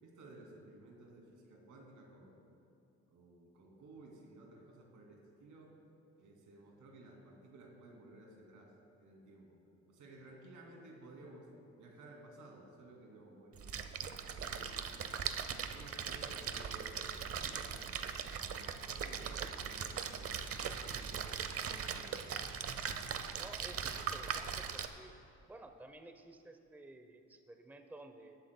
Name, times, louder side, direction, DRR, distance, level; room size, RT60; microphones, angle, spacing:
voice 1, 0.0-2.4 3.1-5.7 6.2-8.7 9.0-9.6 9.9-11.5 11.8-13.8 14.3-15.3 15.6-18.0 18.4-20.4 20.8-22.5, right 2 dB, 80° right, -1 dB, 2.5 m, -56 dB
Splash splatter, 13.6-24.9, right 7 dB, 50° right, 0.7 m, -40 dB
voice 2, 23.4-25.1 25.5-28.4, right 2 dB, 5° right, 6 dB, 0.6 m, -53 dB
18.5 x 11.5 x 2.2 m, 2.6 s
cardioid pair, 90°, 30 cm